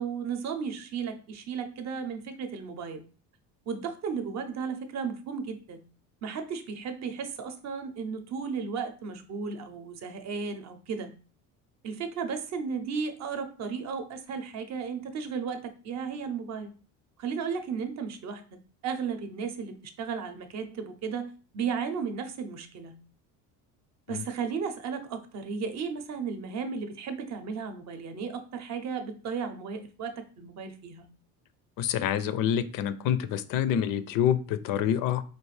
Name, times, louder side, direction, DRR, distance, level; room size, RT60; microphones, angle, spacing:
voice 1, 0.0-3.0 3.7-5.8 6.2-11.1 11.8-16.7 17.2-18.4 18.8-23.0 24.1-31.1, right 6 dB, 50° right, 7 dB, 0.6 m, -34 dB
voice 2, 31.8-35.2, left 9 dB, 65° left, 14 dB, 0.5 m, -27 dB
4.5 x 2.4 x 3.2 m, 0.38 s
cardioid pair, 125°, 36 cm